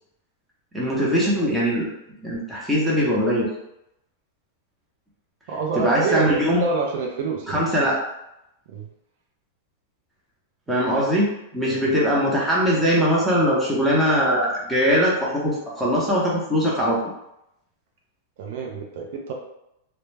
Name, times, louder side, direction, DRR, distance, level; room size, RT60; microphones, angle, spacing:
voice 1, 0.7-1.9 2.2-3.5 5.8-6.6 7.5-7.9 10.7-11.3 11.5-17.0, equal, 5° right, -6 dB, 0.7 m, -21 dB
voice 2, 5.5-7.7 8.7-8.9 11.7-11.9 18.4-19.3, right 5 dB, 60° right, 1 dB, 0.4 m, -27 dB
2.2 x 2.1 x 3.2 m, 0.85 s
supercardioid pair, 140°, 0 cm